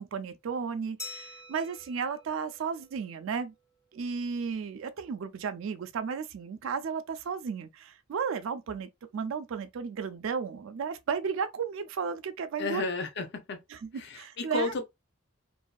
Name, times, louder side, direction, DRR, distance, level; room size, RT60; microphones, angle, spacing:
voice 1, 0.0-3.5 3.9-12.9 13.7-14.7, right 6 dB, 65° right, 0.3 m, -34 dB
Glass, 1.0-3.5, left 2 dB, 15° left, 0.7 m, -46 dB
voice 2, 12.6-13.6 14.0-14.8, left 3 dB, 55° left, 0.6 m, -32 dB
2.6 x 2.3 x 2.2 m
head